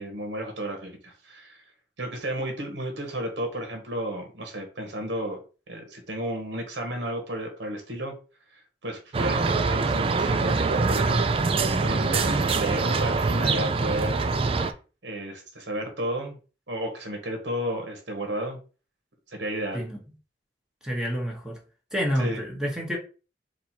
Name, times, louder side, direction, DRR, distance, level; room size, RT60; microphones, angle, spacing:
voice 1, 0.0-1.6 2.0-5.4 5.7-8.1 8.5-14.2 15.0-16.4 16.7-18.6 19.4-19.8 22.2-22.4, right 1 dB, 80° right, 1.4 m, -32 dB
sound 1, 9.1-14.7, right 4 dB, 30° right, 0.4 m, -24 dB
voice 2, 20.8-21.6 21.9-23.0, equal, 5° right, 1.1 m, -28 dB
4.3 x 2.7 x 4.4 m
head